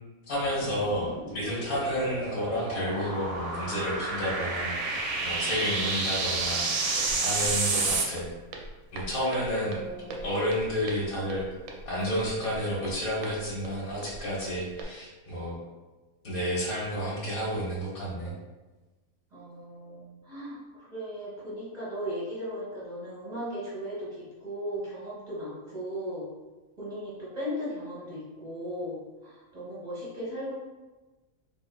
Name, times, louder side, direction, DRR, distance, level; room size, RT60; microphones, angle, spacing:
voice 1, 0.3-8.3 8.9-9.8 10.2-11.5 11.9-15.6 16.2-18.3, equal, 80° left, -6 dB, 1.7 m, -31 dB
sound 1, 0.5-8.1, right 3 dB, 65° right, 0.9 m, -30 dB
Walk footsteps, 7.0-14.8, right 2 dB, 90° right, 1.0 m, -43 dB
voice 2, 9.6-10.4 19.3-26.3 26.8-30.5, equal, 30° right, -8 dB, 1.1 m, -37 dB
3.7 x 3.5 x 2.3 m, 1.2 s
omnidirectional pair, 1.5 m